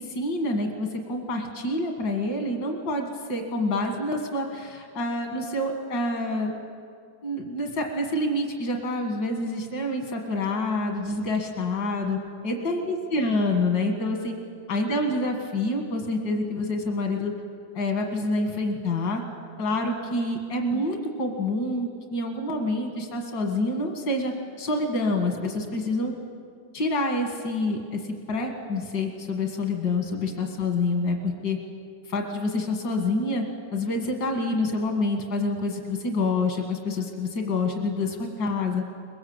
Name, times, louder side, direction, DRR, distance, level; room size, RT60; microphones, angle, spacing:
voice 1, 0.0-6.5 7.2-14.4 14.7-17.3 17.7-19.2 19.6-26.1 26.7-31.6 32.1-33.4 33.7-38.8, left 2 dB, 75° left, 3 dB, 2.5 m, -27 dB
23.5 x 21.5 x 8.0 m, 2.3 s
omnidirectional pair, 1.9 m